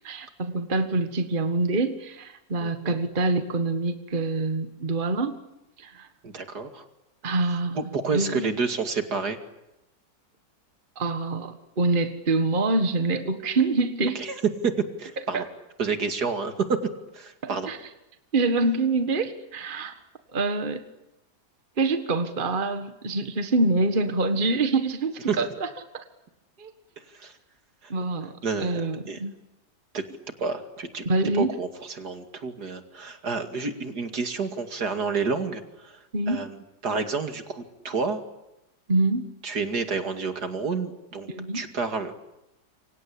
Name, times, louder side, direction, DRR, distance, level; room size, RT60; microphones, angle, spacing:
voice 1, 0.0-5.4 5.8-6.1 7.2-7.8 8.1-8.5 11.0-14.2 15.3-15.5 17.4-17.8 18.3-20.0 20.3-20.8 21.8-26.0 26.6-26.7 27.9-29.3 31.0-31.5 36.1-36.5 38.9-39.3 41.3-41.6, right 3 dB, 30° right, 9 dB, 1.7 m, -26 dB
voice 2, 2.6-3.0 6.2-6.9 7.7-9.4 14.1-15.4 15.8-16.8 17.1-17.7 25.3-25.4 27.1-27.3 27.8-27.9 28.4-28.8 29.1-29.2 29.9-30.0 30.4-31.1 31.3-36.5 36.8-38.2 39.4-41.3 41.5-42.1, right 5 dB, 70° right, 7 dB, 2.9 m, -29 dB
28.0 x 25.0 x 8.6 m, 0.91 s
omnidirectional pair, 1.8 m